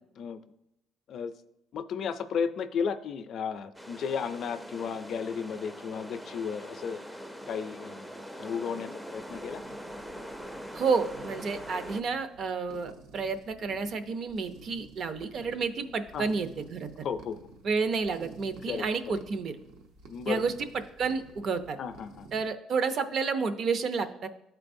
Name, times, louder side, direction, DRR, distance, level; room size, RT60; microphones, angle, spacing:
voice 1, 1.7-7.0 7.5-9.6 16.1-16.3 17.0-17.4 18.7-19.2 20.1-20.4 21.8-22.3, left 6 dB, 60° left, 11 dB, 0.4 m, -34 dB
sound 1, 3.7-12.0, equal, 5° right, 0.4 m, -43 dB
sound 2, 9.2-22.5, right 3 dB, 85° right, 0.8 m, -52 dB
voice 2, 10.7-16.9 17.6-19.5 20.3-20.7 21.0-21.8 22.3-24.3, right 5 dB, 50° right, 10 dB, 0.6 m, -30 dB
13.0 x 4.5 x 2.6 m, 0.89 s
cardioid pair, 115°, 0 cm